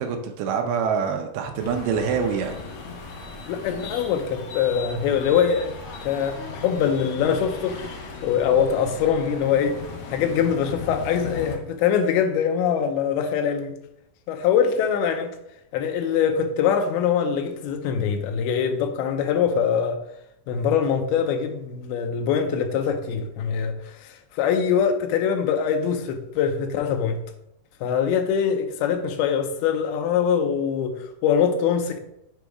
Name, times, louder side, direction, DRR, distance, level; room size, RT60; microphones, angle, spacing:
voice 1, 0.0-2.6, right 6 dB, 85° right, 2.6 m, -25 dB
sound 1, 1.6-11.6, left 4 dB, 65° left, 1.9 m, -37 dB
voice 2, 3.5-7.8 8.2-9.8 10.1-13.8 14.3-15.4 15.7-20.0 20.5-27.2 27.8-32.0, left 7 dB, 85° left, 2.7 m, -23 dB
7.3 x 3.9 x 4.7 m
omnidirectional pair, 4.4 m